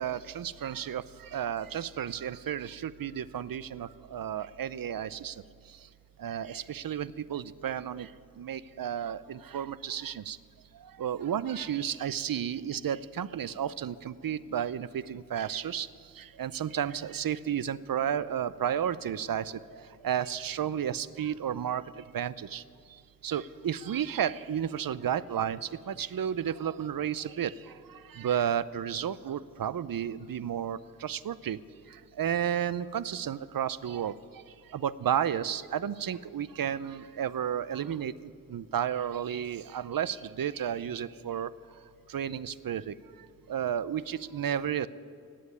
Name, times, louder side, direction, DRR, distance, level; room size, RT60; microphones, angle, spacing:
voice 1, 0.0-5.4 6.2-8.1 8.4-10.4 11.0-15.9 16.2-19.6 20.0-22.6 23.2-31.6 32.2-34.2 34.7-41.5 42.1-42.9 43.5-44.9, right 9 dB, 70° right, 17 dB, 0.6 m, -32 dB
17.0 x 7.7 x 9.5 m, 2.4 s
cardioid pair, 45°, 36 cm